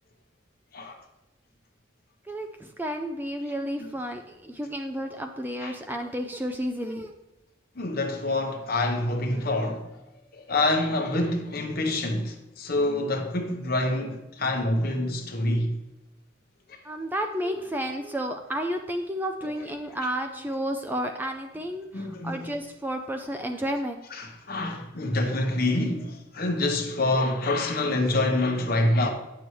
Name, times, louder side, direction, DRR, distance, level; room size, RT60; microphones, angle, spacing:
voice 1, 2.3-7.1 16.8-24.0, equal, 10° right, 0.4 m, -31 dB
voice 2, 7.8-9.9 10.3-15.8 19.4-19.5 21.9-22.5 24.1-29.1, left 2 dB, 50° left, 1.0 m, -26 dB
9.4 x 6.9 x 3.1 m
head